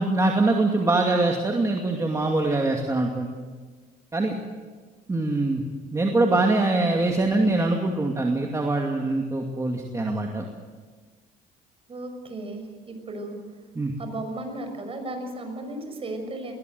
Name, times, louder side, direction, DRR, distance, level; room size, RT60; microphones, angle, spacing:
voice 1, 0.0-3.3 4.1-4.4 5.1-5.6 5.9-10.4 13.7-13.9, right 2 dB, 20° right, 1 dB, 2.5 m, -23 dB
voice 2, 11.9-13.4 14.0-16.5, right 2 dB, 35° right, 5 dB, 6.0 m, -35 dB
21.5 x 20.0 x 8.0 m, 1.4 s
cardioid pair, 110°, 17 cm